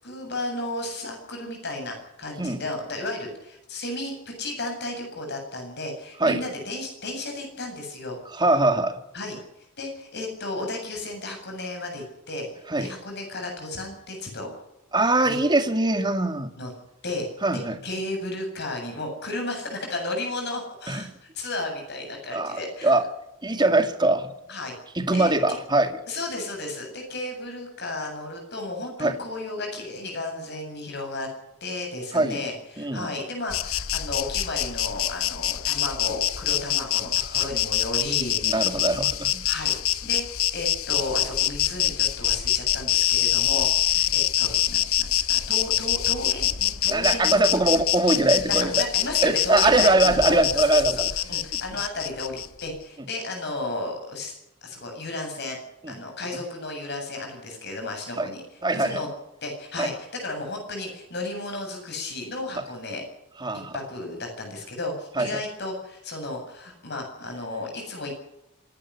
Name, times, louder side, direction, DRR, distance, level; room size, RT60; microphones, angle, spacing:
voice 1, 0.0-8.2 9.1-9.4 9.8-12.5 12.8-14.5 15.2-15.4 16.6-16.7 17.0-17.3 17.5-23.0 24.5-24.7 25.1-25.6 26.1-31.3 31.6-38.7 39.4-39.8 40.0-47.4 48.4-54.3 54.6-55.6 55.9-58.4 58.7-59.1 59.4-63.0 63.5-68.2, left 2 dB, 50° left, 2 dB, 8.0 m, -33 dB
voice 2, 8.3-9.0 12.7-12.9 14.9-16.5 17.4-17.8 20.9-21.0 22.3-23.0 23.4-24.3 25.0-25.9 29.0-29.2 32.1-32.4 32.8-33.1 37.3-37.5 38.4-39.4 46.9-48.8 49.2-51.1 55.8-55.9 58.2-58.3 58.6-59.0 59.8-59.9 63.4-63.7 65.2-65.4, right 2 dB, 20° right, 8 dB, 2.0 m, -22 dB
Insect, 33.5-52.7, left 12 dB, 80° left, 1.0 m, -25 dB
26.0 x 12.0 x 9.9 m, 0.88 s
head